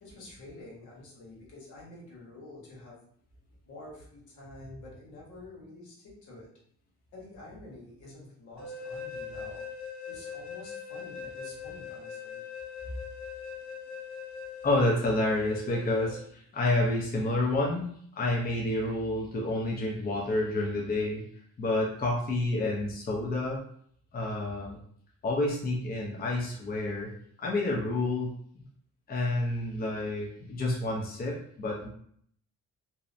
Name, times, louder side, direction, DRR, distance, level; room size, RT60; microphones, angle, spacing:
voice 1, 0.0-3.0 3.6-6.5 7.1-9.6 10.1-12.4, left 2 dB, 75° left, -4 dB, 1.1 m, -48 dB
sound 1, 8.6-16.2, left 6 dB, 65° right, 0.8 m, -41 dB
voice 2, 14.6-17.9 18.1-21.2 21.6-23.6 24.1-24.8 25.2-27.1 27.4-28.6 29.1-31.9, left 2 dB, 30° left, -2 dB, 0.6 m, -29 dB
2.7 x 2.1 x 2.5 m, 0.63 s
cardioid pair, 90°, 30 cm